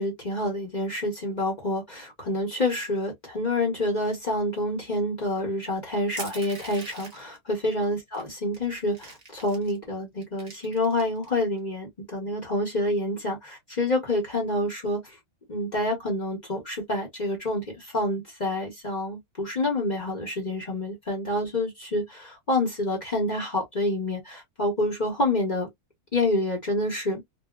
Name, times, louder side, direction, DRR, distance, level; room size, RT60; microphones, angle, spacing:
voice 1, 0.0-15.2 15.5-25.7 26.1-27.2, left 1 dB, 35° left, 0.8 m, -28 dB
Crushing, 6.2-7.4 8.1-8.2 8.5-9.8 10.2-11.3, right 2 dB, 30° right, 0.9 m, -42 dB
2.7 x 2.3 x 2.2 m
omnidirectional pair, 1.7 m